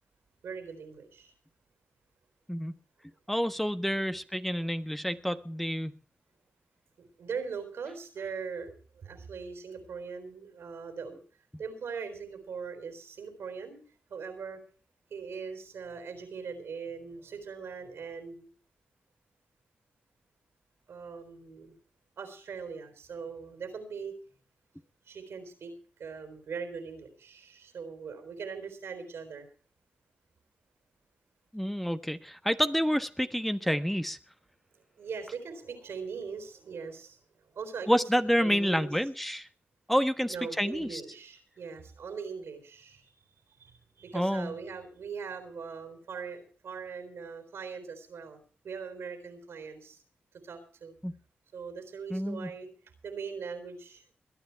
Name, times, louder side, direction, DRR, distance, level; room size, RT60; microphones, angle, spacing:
voice 1, 0.4-1.3 7.2-11.2 11.6-13.8 14.1-14.6 15.1-18.5 20.9-21.8 22.2-24.1 25.1-25.7 26.0-29.5 35.0-38.0 38.4-38.9 40.3-43.1 43.6-50.0 50.4-50.9 51.5-52.7 53.0-54.0, right 5 dB, 80° right, 9 dB, 4.0 m, -41 dB
voice 2, 3.3-5.9 31.5-34.2 37.9-39.5 39.9-41.0 44.1-44.5 51.0-51.1 52.1-52.5, equal, 5° left, 10 dB, 1.2 m, -28 dB
21.5 x 9.7 x 4.6 m, 0.41 s
supercardioid pair, 40°, 4 cm